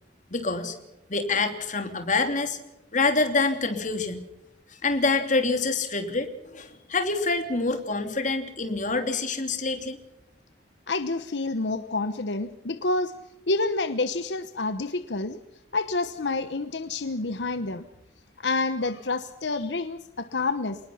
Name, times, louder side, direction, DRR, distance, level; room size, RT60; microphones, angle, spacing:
voice 1, 0.3-0.8 1.1-2.6 2.9-4.2 4.7-10.0, left 3 dB, 45° left, 7 dB, 3.1 m, -26 dB
voice 2, 10.9-13.1 13.5-15.4 15.7-17.9 18.4-20.8, left 3 dB, 75° left, 10 dB, 1.1 m, -28 dB
28.0 x 19.5 x 5.8 m, 0.89 s
head